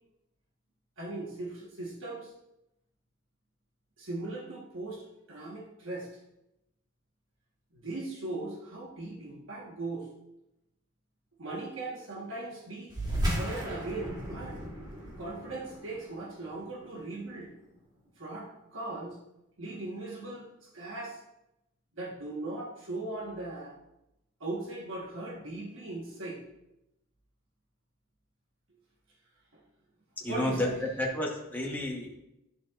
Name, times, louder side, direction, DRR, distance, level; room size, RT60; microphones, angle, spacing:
voice 1, 1.0-2.3 4.0-6.1 7.7-10.1 11.4-12.9 13.3-14.6 15.2-17.5 18.2-19.2 19.6-21.2 21.9-23.7 24.4-26.4 29.5-29.6 30.2-30.7, right 2 dB, 65° right, -3 dB, 1.3 m, -39 dB
sound 1, 12.9-17.8, equal, 20° right, 1.5 m, -36 dB
voice 2, 30.2-30.7 31.0-32.1, left 1 dB, 10° left, -1 dB, 1.1 m, -31 dB
10.5 x 6.8 x 2.5 m, 0.87 s
head